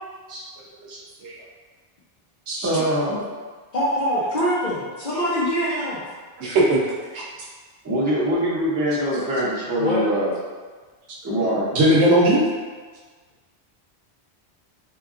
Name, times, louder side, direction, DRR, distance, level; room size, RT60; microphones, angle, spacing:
voice 1, 0.9-1.3 2.5-2.7 6.4-6.8 7.1-7.2 11.7-12.4, right 1 dB, 75° right, -5 dB, 1.0 m, -19 dB
voice 2, 2.6-3.2 7.8-10.3 11.2-11.7, equal, 25° right, -6 dB, 0.4 m, -23 dB
voice 3, 3.7-6.0 9.8-10.0, equal, 50° left, -8 dB, 0.6 m, -23 dB
2.8 x 2.5 x 2.4 m, 1.4 s
omnidirectional pair, 1.1 m